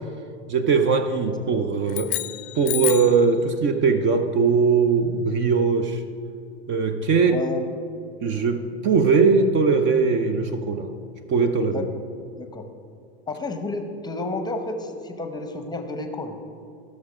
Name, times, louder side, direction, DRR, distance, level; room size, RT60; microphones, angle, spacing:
voice 1, 0.5-2.2 2.5-6.0 6.7-7.4 8.2-10.9 11.3-11.8, right 5 dB, 35° right, 8 dB, 0.7 m, -20 dB
sound 1, 1.9-3.3, left 20 dB, 50° left, 0.5 m, -29 dB
voice 2, 7.2-7.7 11.7-12.0 12.4-12.7 13.3-16.4, left 2 dB, 10° left, 7 dB, 0.8 m, -31 dB
14.5 x 6.5 x 5.0 m, 2.5 s
hypercardioid pair, 100°, 34 cm